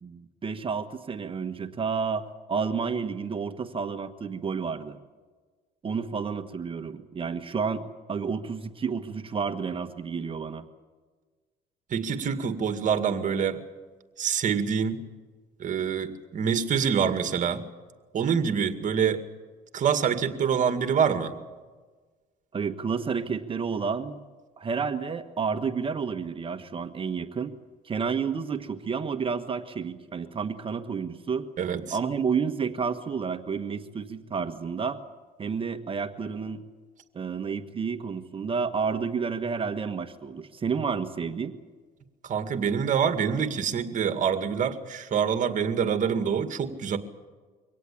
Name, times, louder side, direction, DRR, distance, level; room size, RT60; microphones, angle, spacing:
voice 1, 0.0-2.2 2.5-5.0 5.8-10.6 22.5-24.2 24.6-27.5 27.8-31.5 31.9-35.0 35.4-36.6 37.1-41.5, right 5 dB, 30° right, 8 dB, 1.5 m, -30 dB
voice 2, 11.9-13.6 14.2-15.0 15.6-17.6 18.1-19.2 19.7-21.3 31.6-32.0 42.2-47.0, right 7 dB, 50° right, 8 dB, 2.1 m, -26 dB
24.0 x 17.5 x 8.6 m, 1.4 s
cardioid pair, 110°, 17 cm